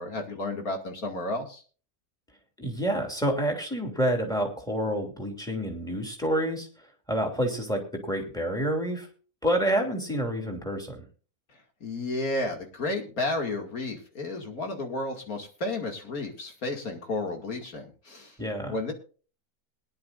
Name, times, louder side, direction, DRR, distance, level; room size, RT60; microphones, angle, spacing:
voice 1, 0.0-1.6 11.8-18.4 18.7-18.9, left 2 dB, 70° left, 2 dB, 2.8 m, -32 dB
voice 2, 2.6-9.1 9.4-11.0 18.4-18.8, right 1 dB, ahead, 2 dB, 2.8 m, -28 dB
21.0 x 10.5 x 2.6 m, 0.38 s
omnidirectional pair, 1.6 m